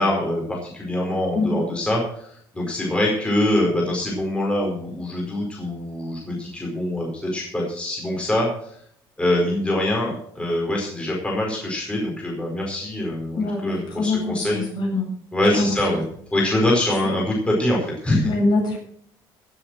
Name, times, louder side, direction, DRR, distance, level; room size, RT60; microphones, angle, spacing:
voice 1, 0.0-8.8 9.2-14.6 15.3-16.0 16.3-18.3, left 1 dB, 10° left, -2 dB, 4.7 m, -24 dB
voice 2, 13.4-15.1 15.6-15.7 18.2-18.8, left 2 dB, 55° left, 0 dB, 7.7 m, -23 dB
16.0 x 8.0 x 6.2 m, 0.64 s
cardioid pair, 115°, 9 cm